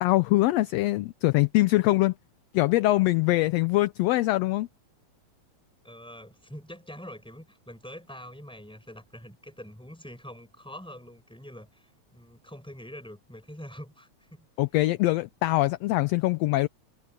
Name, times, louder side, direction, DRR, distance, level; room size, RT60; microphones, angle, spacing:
voice 1, 0.0-2.1 2.5-4.7 14.6-16.7, left 18 dB, 75° left, 1.6 m, -23 dB
voice 2, 5.8-14.5, equal, ahead, 5.1 m, -45 dB
omnidirectional pair, 3.3 m